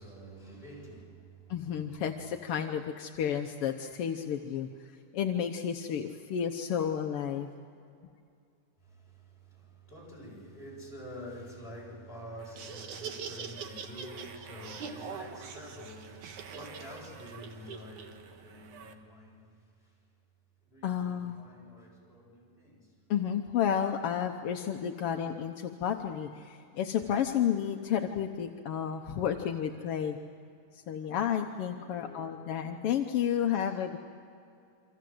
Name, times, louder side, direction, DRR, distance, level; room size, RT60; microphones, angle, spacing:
voice 1, 0.0-1.6 8.8-19.5 19.8-19.9 20.6-22.9 31.5-32.3 33.3-33.8, equal, 15° left, 8.0 m, -48 dB
voice 2, 1.5-4.7 5.1-7.5 20.8-21.4 23.1-30.2 30.7-34.0, left 9 dB, 65° left, 1.5 m, -31 dB
Laughter, 12.4-18.9, right 6 dB, 70° right, 2.9 m, -44 dB
28.5 x 25.0 x 7.8 m
omnidirectional pair, 3.7 m